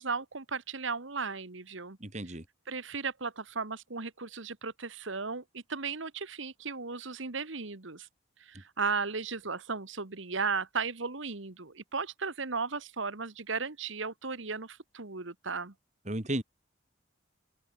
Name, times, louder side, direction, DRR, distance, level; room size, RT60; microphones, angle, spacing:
voice 1, 0.0-2.0 2.7-8.1 8.4-15.7, right 4 dB, 70° right, 1.6 m, -35 dB
voice 2, 2.0-2.4 16.1-16.4, right 1 dB, 35° right, 2.4 m, -34 dB
open air
head